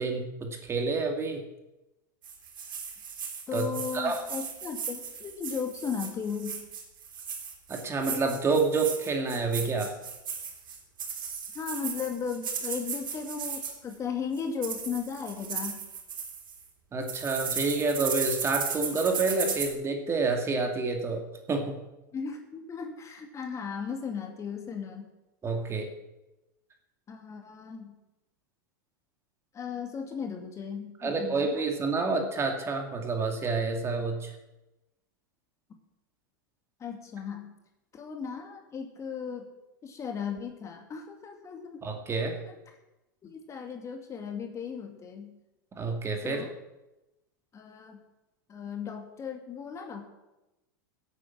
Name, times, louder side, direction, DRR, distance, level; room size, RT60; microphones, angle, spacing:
voice 1, 0.0-1.4 3.5-3.7 3.9-4.2 7.7-9.9 16.9-21.8 25.4-25.9 31.0-34.3 41.8-42.4 45.7-46.4, right 3 dB, 25° right, 4 dB, 2.4 m, -28 dB
sound 1, 2.2-13.9 14.4-16.6 17.0-19.7, right 6 dB, 75° right, 3.6 m, -36 dB
voice 2, 3.5-6.6 11.5-15.9 22.1-25.1 27.1-28.0 29.5-31.6 36.8-37.6 37.9-39.5 39.8-41.8 42.5-42.6 43.2-45.4 46.2-46.5 47.5-48.0 48.5-50.1, left 6 dB, 25° left, 4 dB, 2.3 m, -36 dB
16.0 x 8.6 x 7.3 m, 0.99 s
hypercardioid pair, 95°, 11 cm